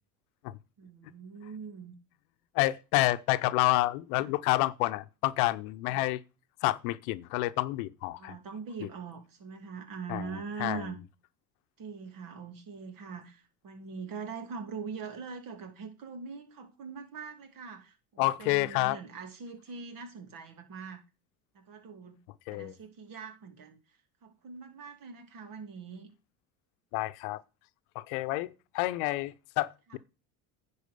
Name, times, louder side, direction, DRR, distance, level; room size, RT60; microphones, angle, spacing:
voice 1, 0.8-1.9 4.2-4.3 5.9-6.0 8.2-11.0 11.8-21.0 21.5-22.2 22.5-23.8 24.2-26.1 29.9-30.0, right 5 dB, 50° right, 2.5 m, -42 dB
voice 2, 2.5-6.2 6.6-8.3 10.1-10.8 18.2-19.0 22.5-22.7 26.9-27.4 27.9-30.0, left 18 dB, 75° left, 0.8 m, -29 dB
10.5 x 4.4 x 6.8 m
supercardioid pair, 95°, 44 cm